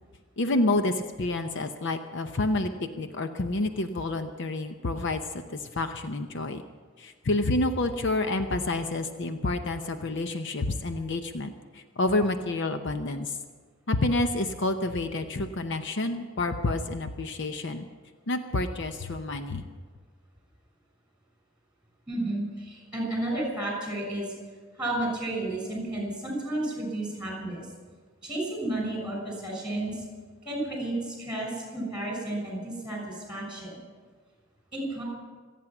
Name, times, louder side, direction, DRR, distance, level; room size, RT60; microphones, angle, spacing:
voice 1, 0.4-2.7 3.0-5.2 5.8-6.6 7.0-13.4 13.9-17.9 18.3-19.6, left 2 dB, 60° left, 7 dB, 0.8 m, -28 dB
voice 2, 22.1-24.3 24.8-27.7 28.2-30.0 30.4-33.8 34.7-35.0, right 1 dB, 5° right, -1 dB, 6.2 m, -32 dB
25.5 x 9.3 x 6.0 m, 1.5 s
head